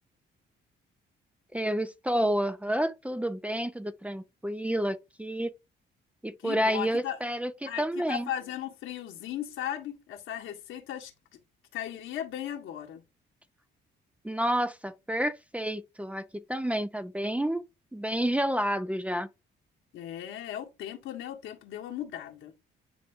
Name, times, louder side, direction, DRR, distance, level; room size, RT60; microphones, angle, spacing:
voice 1, 1.5-5.5 6.2-8.3 14.2-17.6 17.9-19.3, equal, 5° right, 0.5 m, -29 dB
voice 2, 6.4-7.2 7.7-11.1 11.7-13.0 19.9-22.5, left 11 dB, 85° left, 1.7 m, -37 dB
10.0 x 3.5 x 2.6 m
cardioid pair, 90°, 20 cm